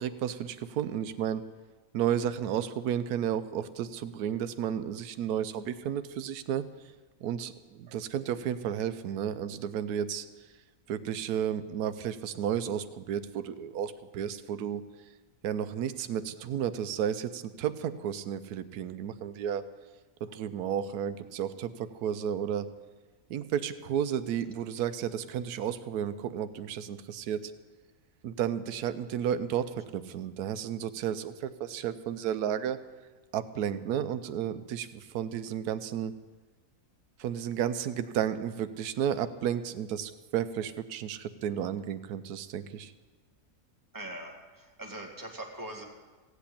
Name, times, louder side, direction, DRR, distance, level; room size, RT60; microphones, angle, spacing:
voice 1, 0.0-1.4 1.9-6.9 7.2-10.5 10.9-14.8 15.4-19.6 20.2-22.7 23.3-27.5 28.2-32.8 33.3-36.1 37.2-42.9, right 9 dB, 90° right, 12 dB, 1.2 m, -32 dB
voice 2, 43.9-45.8, right 1 dB, 15° right, 1 dB, 1.9 m, -41 dB
16.5 x 8.3 x 8.5 m, 1.3 s
omnidirectional pair, 1.6 m